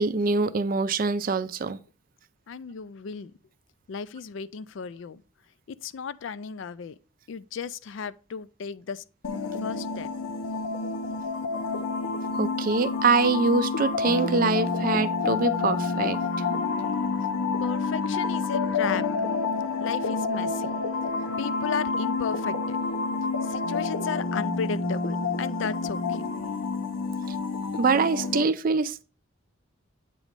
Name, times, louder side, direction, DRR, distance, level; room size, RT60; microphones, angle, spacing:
voice 1, 0.0-1.8 12.3-16.5 27.7-29.0, right 4 dB, 40° right, 0.4 m, -24 dB
voice 2, 2.5-3.3 3.9-5.2 5.7-7.0 7.3-9.0 9.6-10.1 17.6-19.0 19.8-20.7 21.4-22.8 23.4-26.2, left 6 dB, 65° left, 0.4 m, -34 dB
sound 1, 9.2-28.4, left 4 dB, 85° left, 0.8 m, -28 dB
8.2 x 3.1 x 5.1 m
head